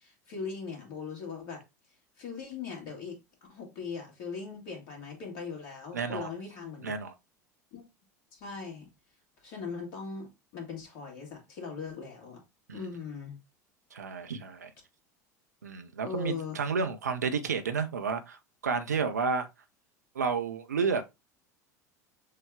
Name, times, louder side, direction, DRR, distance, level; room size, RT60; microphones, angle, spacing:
voice 1, 0.0-1.6 2.2-3.2 3.5-6.9 7.7-7.9 8.3-8.9 9.4-12.4 12.7-13.4 16.0-16.6, left 5 dB, 50° left, 2.0 m, -40 dB
voice 2, 5.9-6.3 6.8-7.1 12.7-12.9 13.9-14.7 15.6-19.5 20.1-21.0, right 5 dB, 75° right, 0.6 m, -31 dB
6.4 x 2.3 x 3.5 m
figure-of-eight pair, 75°, 9 cm